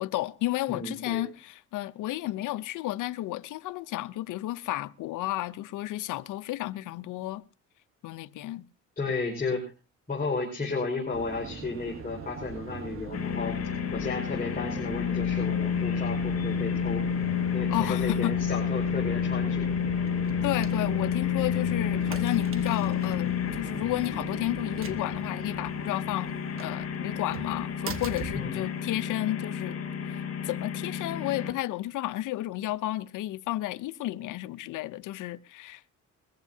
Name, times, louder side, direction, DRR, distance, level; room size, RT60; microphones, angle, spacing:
voice 1, 0.0-7.4 8.0-8.6 17.7-18.3 20.4-29.8 30.1-35.9, left 15 dB, 85° left, 0.7 m, -32 dB
voice 2, 0.7-1.2 9.0-9.6 10.1-13.6 13.9-17.0 17.5-19.8 28.3-28.6, left 3 dB, 30° left, 5.1 m, -33 dB
sound 1, 11.1-29.2, right 6 dB, 45° right, 1.3 m, -40 dB
sound 2, 13.1-31.5, left 8 dB, 55° left, 6.5 m, -30 dB
22.0 x 14.5 x 2.8 m
cardioid pair, 90°, 30 cm